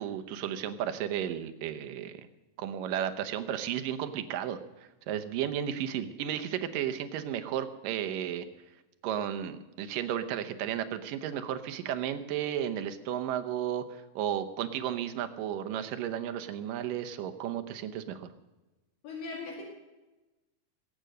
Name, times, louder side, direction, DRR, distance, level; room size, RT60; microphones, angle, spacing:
voice 1, 0.0-2.2 2.6-4.6 5.1-8.4 9.0-18.3, right 10 dB, 75° right, 9 dB, 2.4 m, -33 dB
voice 2, 19.0-19.6, left 4 dB, 70° left, -1 dB, 3.9 m, -39 dB
20.5 x 9.0 x 6.6 m, 1.1 s
omnidirectional pair, 4.2 m